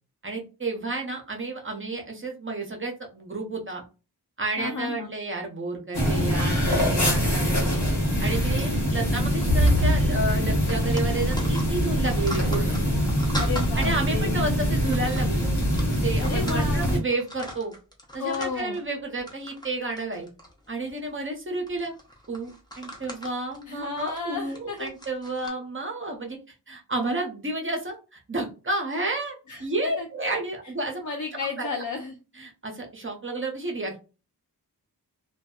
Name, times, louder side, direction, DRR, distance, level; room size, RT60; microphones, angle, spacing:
voice 1, 0.2-3.8 4.4-7.8 8.2-12.8 13.7-15.5 15.9-17.7 18.1-20.3 20.7-21.9 22.3-26.4 26.7-31.0 31.6-31.7 32.3-34.0, right 2 dB, 30° right, 2 dB, 0.6 m, -31 dB
voice 2, 4.6-5.1 13.4-14.6 16.2-17.0 18.2-18.8 23.7-24.9 29.5-30.1 31.0-32.2, left 4 dB, 50° left, 1 dB, 0.5 m, -33 dB
sound 1, 5.9-17.0, equal, 85° left, 1.2 m, -23 dB
sound 2, 8.3-9.1 9.4-9.6 9.9-10.0 10.3-13.7 14.3-14.5 14.9-16.8 17.1-18.8 19.2-19.7 20.0-21.1 21.7-25.5, equal, 10° left, 0.6 m, -40 dB
2.6 x 2.2 x 2.3 m, 0.32 s
wide cardioid pair, 80°, 39 cm